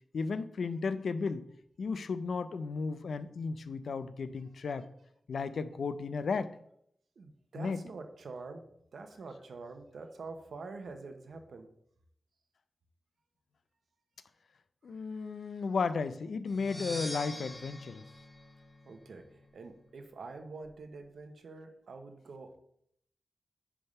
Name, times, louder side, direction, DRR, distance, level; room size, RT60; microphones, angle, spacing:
voice 1, 0.1-1.4 1.8-4.9 5.3-6.5 7.6-7.8 14.8-18.0, left 4 dB, 85° left, 13 dB, 0.5 m, -34 dB
voice 2, 4.5-4.8 7.2-11.7 14.9-15.6 18.8-22.6, right 3 dB, 85° right, 6 dB, 1.0 m, -47 dB
sound 1, 16.5-19.3, left 1 dB, 10° left, 1.2 m, -44 dB
10.0 x 3.6 x 5.4 m, 0.71 s
wide cardioid pair, 125°, 0 cm